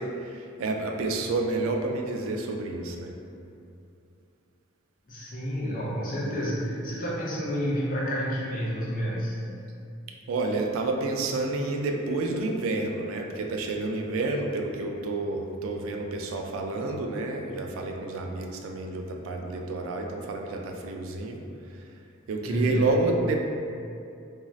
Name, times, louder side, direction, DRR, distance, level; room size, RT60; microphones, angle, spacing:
voice 1, 0.0-3.1 10.3-21.4 21.7-21.8 22.3-23.4, right 2 dB, 70° right, 2 dB, 0.3 m, -29 dB
voice 2, 5.1-9.4 22.5-22.9, equal, 40° left, -7 dB, 0.6 m, -29 dB
2.6 x 2.3 x 3.1 m, 2.5 s
head